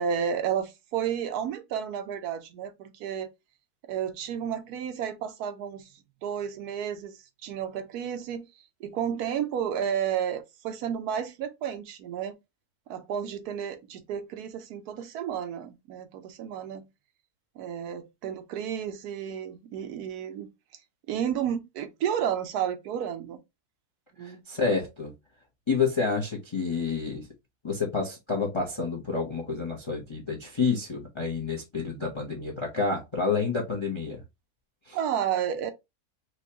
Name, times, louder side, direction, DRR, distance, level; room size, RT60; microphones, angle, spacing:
voice 1, 0.0-3.3 3.8-5.9 6.2-8.5 8.8-12.4 12.9-16.8 17.6-20.5 21.1-23.4 24.2-24.4 34.9-35.7, right 8 dB, 85° right, 1.2 m, -32 dB
voice 2, 24.2-25.1 25.7-27.3 27.6-34.2 34.9-35.0, left 4 dB, 30° left, 0.6 m, -29 dB
4.4 x 2.4 x 2.7 m
omnidirectional pair, 1.6 m